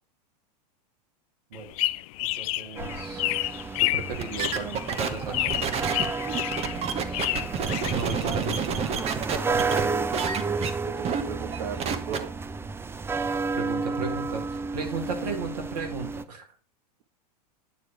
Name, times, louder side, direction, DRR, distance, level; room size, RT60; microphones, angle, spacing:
sound 1, 1.5-8.6, left 18 dB, 55° left, 0.4 m, -30 dB
voice 1, 2.2-3.2 3.8-6.1 7.9-8.7 13.6-16.5, right 4 dB, 80° right, 4 dB, 2.2 m, -35 dB
sound 2, 2.8-16.2, right 4 dB, 10° right, 0.5 m, -32 dB
sound 3, 4.1-9.9 10.1-10.7 11.0-11.2 11.5-12.2, right 6 dB, 30° right, 1.0 m, -29 dB
voice 2, 9.3-9.7 10.8-12.3, right 8 dB, 60° right, 9 dB, 1.4 m, -36 dB
9.3 x 3.3 x 6.0 m, 0.40 s
hypercardioid pair, 105°, 20 cm